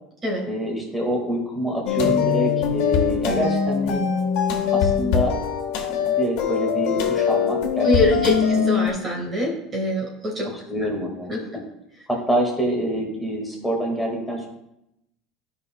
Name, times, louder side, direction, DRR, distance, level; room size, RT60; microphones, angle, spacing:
voice 1, 0.5-4.0 4.7-5.4 5.7-8.6 9.2-9.3 10.7-11.6 12.1-14.5, equal, ahead, -2 dB, 1.7 m, -26 dB
sound 1, 1.9-8.9, left 7 dB, 70° left, 1.3 m, -22 dB
voice 2, 7.8-10.5 11.3-11.7, left 1 dB, 25° right, -1 dB, 1.6 m, -24 dB
12.5 x 5.6 x 2.2 m, 0.82 s
cardioid pair, 150°, 0 cm